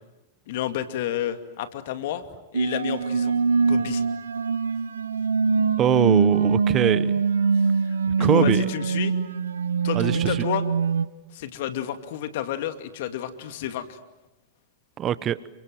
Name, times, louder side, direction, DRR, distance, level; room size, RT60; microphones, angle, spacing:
voice 1, 0.5-2.2 2.5-3.3 3.7-4.0 7.9-9.1 9.8-10.7 11.3-14.0, left 11 dB, 60° left, 9 dB, 2.5 m, -30 dB
sound 1, 2.5-11.1, right 5 dB, 85° right, 1.1 m, -23 dB
voice 2, 5.8-7.1 8.2-8.6 9.9-10.4 15.0-15.4, right 10 dB, 30° right, 17 dB, 1.0 m, -23 dB
29.0 x 25.0 x 8.0 m, 1.0 s
hypercardioid pair, 110°, 0 cm